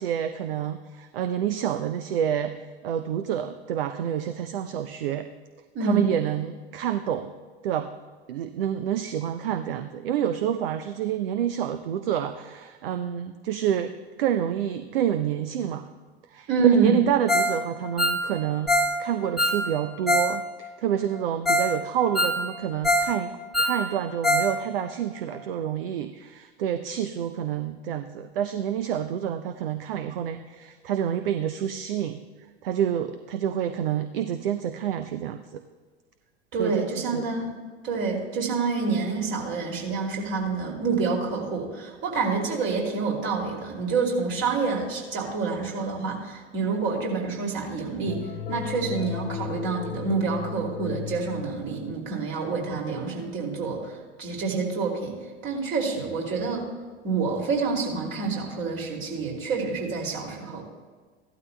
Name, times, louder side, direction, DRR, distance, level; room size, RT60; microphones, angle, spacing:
voice 1, 0.0-2.5 2.8-5.3 5.8-7.3 7.6-7.9 8.3-13.9 14.2-15.9 16.3-23.3 23.6-32.2 32.6-35.6 36.6-37.3, right 10 dB, 60° right, 10 dB, 0.6 m, -28 dB
voice 2, 16.5-17.0 36.5-37.5 37.8-55.1 55.4-56.7 57.0-60.6, right 4 dB, 35° right, 0 dB, 2.7 m, -27 dB
Ringtone, 17.3-17.6 17.8-20.3 20.6-20.7 21.2-21.3 21.5-21.7 22.0-23.1 23.4-24.5 24.8-24.9 25.3-25.4, left 1 dB, ahead, 1.3 m, -24 dB
sound 1, 48.1-52.2, left 10 dB, 20° left, 0.5 m, -36 dB
15.5 x 12.0 x 2.2 m, 1.5 s
figure-of-eight pair, 85°, 33 cm